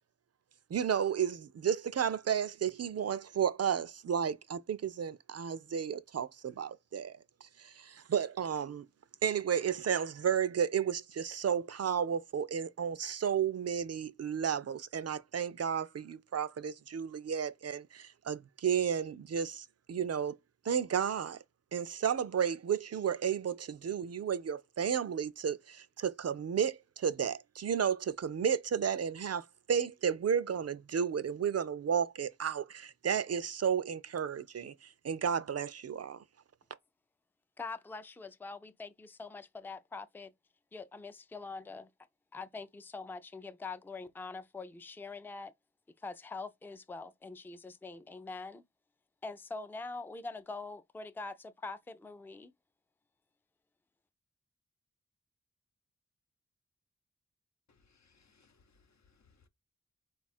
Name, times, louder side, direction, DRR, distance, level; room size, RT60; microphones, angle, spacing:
voice 1, 0.7-7.2 7.6-8.9 9.2-20.4 20.7-21.4 21.7-36.2, right 8 dB, 55° right, 0.4 m, -32 dB
voice 2, 37.6-40.3 40.7-41.9 42.3-45.5 46.0-48.6 49.2-52.5, left 3 dB, 5° left, 0.3 m, -44 dB
voice 3, 57.7-59.5, left 4 dB, 65° left, 0.7 m, -68 dB
4.1 x 2.4 x 4.1 m
wide cardioid pair, 55°, 30 cm